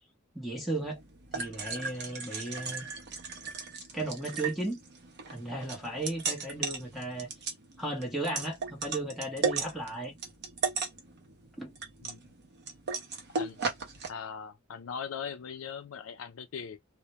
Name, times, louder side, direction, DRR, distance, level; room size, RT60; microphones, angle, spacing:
voice 1, 0.3-1.0 1.3-2.9 3.9-4.8 5.3-7.3 7.8-10.1 11.6-11.7, right 2 dB, ahead, 0.8 m, -35 dB
sound 1, 0.8-14.1, right 4 dB, 50° right, 0.7 m, -37 dB
voice 2, 14.1-16.8, left 6 dB, 70° left, 0.5 m, -40 dB
2.1 x 2.1 x 2.8 m
head